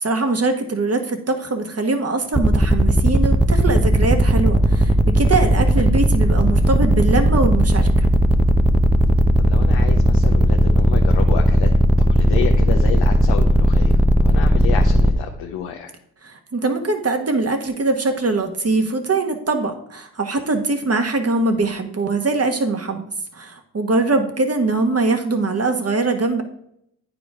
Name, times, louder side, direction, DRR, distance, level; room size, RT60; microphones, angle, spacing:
voice 1, 0.0-8.1 16.2-23.0 23.3-26.4, right 3 dB, 35° right, 6 dB, 1.5 m, -22 dB
sound 1, 2.3-15.1, equal, 5° right, 0.7 m, -16 dB
voice 2, 9.4-11.7 12.0-15.9 24.1-24.2, left 8 dB, 80° left, 2 dB, 0.9 m, -30 dB
9.1 x 5.0 x 4.9 m, 0.74 s
supercardioid pair, 55°, 42 cm